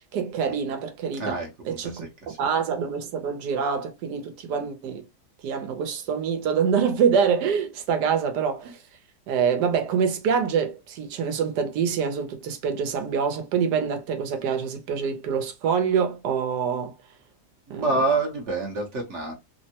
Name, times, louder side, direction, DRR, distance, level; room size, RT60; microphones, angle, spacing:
voice 1, 0.1-1.4 1.6-2.1 2.4-5.0 5.4-8.8 9.3-16.9 17.7-17.9, right 6 dB, 80° right, 1.3 m, -25 dB
voice 2, 1.2-2.4 17.7-19.3, right 3 dB, 55° right, 0.9 m, -27 dB
3.4 x 2.1 x 2.7 m
omnidirectional pair, 1.8 m